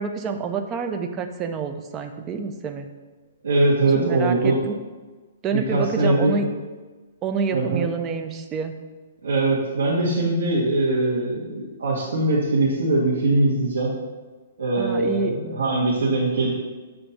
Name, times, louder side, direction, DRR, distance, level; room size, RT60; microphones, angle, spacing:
voice 1, 0.0-2.9 3.9-4.8 5.4-6.5 7.2-8.7 14.8-15.3, right 5 dB, 15° right, 6 dB, 0.3 m, -27 dB
voice 2, 3.4-4.6 5.5-6.4 7.5-7.8 9.2-13.9 14.6-16.5, right 2 dB, 80° right, -7 dB, 1.3 m, -21 dB
6.9 x 2.6 x 5.7 m, 1.3 s
hypercardioid pair, 180°, 0 cm